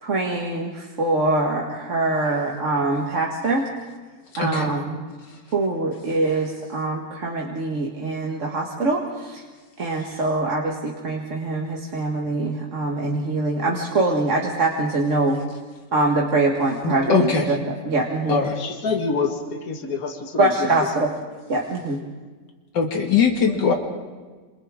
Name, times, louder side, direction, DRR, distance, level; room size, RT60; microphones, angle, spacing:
voice 1, 0.0-3.7 4.4-5.0 5.5-9.4 9.8-15.4 15.9-17.6 17.9-18.4 20.4-21.1 21.5-22.0, right 2 dB, 45° right, -1 dB, 1.9 m, -23 dB
voice 2, 4.3-4.7 16.8-17.6 18.3-18.6 22.7-23.7, left 5 dB, 85° left, 2 dB, 2.6 m, -21 dB
voice 3, 18.4-20.9, left 4 dB, 55° left, 3 dB, 2.0 m, -27 dB
27.5 x 27.0 x 3.7 m, 1.4 s
omnidirectional pair, 1.8 m